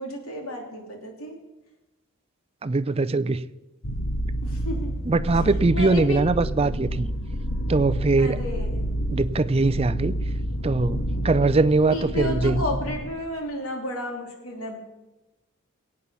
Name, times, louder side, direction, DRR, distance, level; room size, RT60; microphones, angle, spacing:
voice 1, 0.0-1.4 4.4-4.9 5.7-6.2 8.2-8.8 11.9-14.8, left 1 dB, 85° left, 2 dB, 2.9 m, -32 dB
voice 2, 2.6-3.5 5.1-7.1 7.7-8.4 9.1-10.2 10.6-12.6, right 3 dB, 30° right, 13 dB, 0.5 m, -22 dB
sound 1, 3.8-13.0, equal, 65° left, 1.6 m, -29 dB
22.0 x 8.9 x 5.6 m, 1.1 s
head